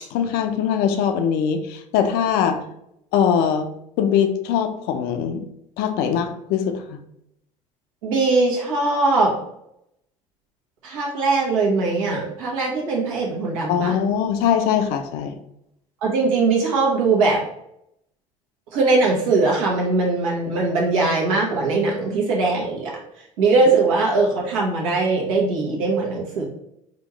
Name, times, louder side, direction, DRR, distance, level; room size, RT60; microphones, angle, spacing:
voice 1, 0.1-2.6 3.1-3.7 4.0-5.4 5.8-7.0 13.7-15.3, left 8 dB, 70° left, 7 dB, 0.6 m, -21 dB
voice 2, 8.0-9.3 10.8-13.9 16.0-17.4 18.7-22.9 23.4-26.5, right 3 dB, 85° right, -3 dB, 1.1 m, -20 dB
4.2 x 2.5 x 3.0 m, 0.78 s
hypercardioid pair, 75°, 17 cm